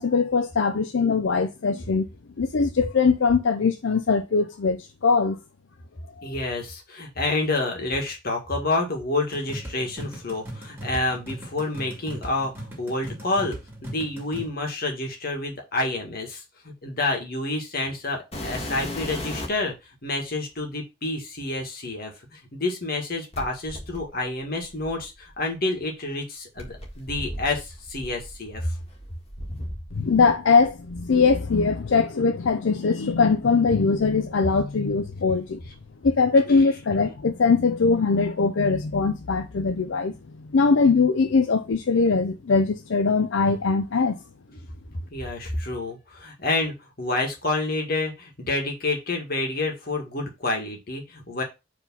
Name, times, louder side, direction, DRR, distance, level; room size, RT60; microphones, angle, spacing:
voice 1, 0.0-2.0 2.4-4.8 5.0-5.4 30.0-35.6 36.0-40.1 40.5-44.2, left 4 dB, 80° left, 0.5 m, -21 dB
voice 2, 6.2-13.6 13.8-19.7 20.0-28.7 36.5-36.7 43.9-44.1 44.5-44.7 45.1-51.4, left 2 dB, 50° left, 1.8 m, -29 dB
sound 1, 9.3-14.5, right 1 dB, 10° right, 2.4 m, -39 dB
sound 2, 18.3-19.7 20.6-20.7 23.3-25.4 26.6-30.3 30.6-31.6 32.4-32.5 33.1-33.2 33.9-35.0 35.3-35.8 37.1-37.2, left 1 dB, 35° left, 1.7 m, -37 dB
4.9 x 3.6 x 5.5 m
head